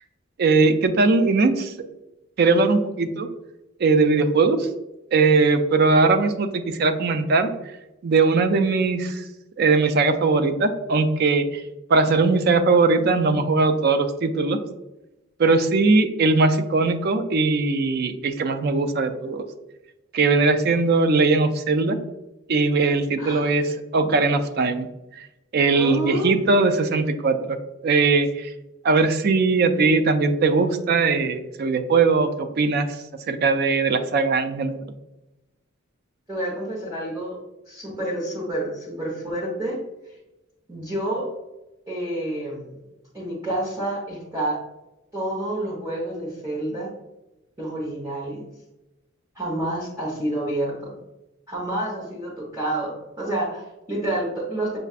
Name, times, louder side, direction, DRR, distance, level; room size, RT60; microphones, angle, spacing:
voice 1, 0.4-1.7 2.4-3.3 3.8-4.7 5.1-7.5 8.0-9.2 9.6-11.6 11.9-14.6 15.4-19.4 20.1-22.0 22.5-23.6 23.9-24.9 25.2-25.3 25.5-27.6 27.8-28.5 28.8-32.9 33.3-34.8, right 3 dB, 50° right, 8 dB, 0.4 m, -20 dB
voice 2, 23.2-23.6 25.7-26.6 36.3-37.4 37.7-39.8 40.7-41.3 41.9-42.8 43.1-44.6 45.1-46.9 47.6-48.4 49.3-51.0 51.5-54.8, right 1 dB, 15° right, -7 dB, 0.9 m, -29 dB
6.5 x 2.4 x 2.4 m, 0.98 s
head